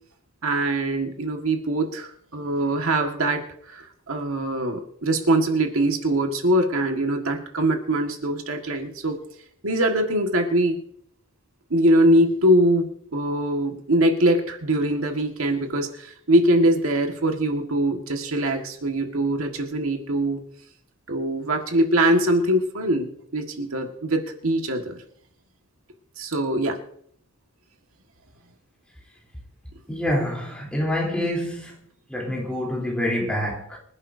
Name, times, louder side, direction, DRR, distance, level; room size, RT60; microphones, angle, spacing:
voice 1, 0.4-9.2 9.6-10.8 11.7-20.4 21.1-25.0 26.2-26.8, right 1 dB, 70° right, 1.8 m, -22 dB
voice 2, 29.9-31.7 32.1-33.8, left 1 dB, 5° left, 3.6 m, -26 dB
25.0 x 11.0 x 2.8 m
head